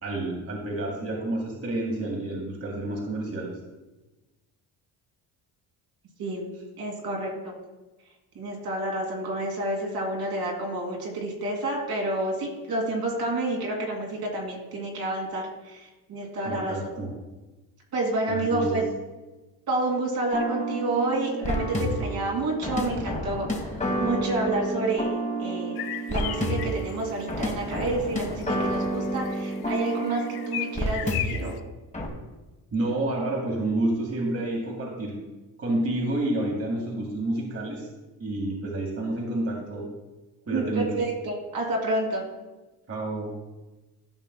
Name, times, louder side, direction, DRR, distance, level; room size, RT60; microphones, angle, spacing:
voice 1, 0.0-3.5 16.4-17.1 18.3-18.8 32.7-35.2 35.6-37.9 38.2-39.9 40.5-40.9 42.9-43.3, right 1 dB, 35° right, -1 dB, 1.9 m, -29 dB
voice 2, 6.8-7.5 8.4-16.7 17.9-18.9 19.7-23.5 24.0-25.8 26.1-31.5 40.5-42.2, right 2 dB, 65° right, -1 dB, 2.6 m, -29 dB
sound 1, 20.3-31.5 31.9-32.1, right 1 dB, 20° left, 1.5 m, -30 dB
sound 2, 25.8-27.0 27.8-27.9 28.3-31.6, left 11 dB, 65° left, 0.7 m, -36 dB
13.5 x 5.7 x 2.3 m, 1.1 s
cardioid pair, 90°, 41 cm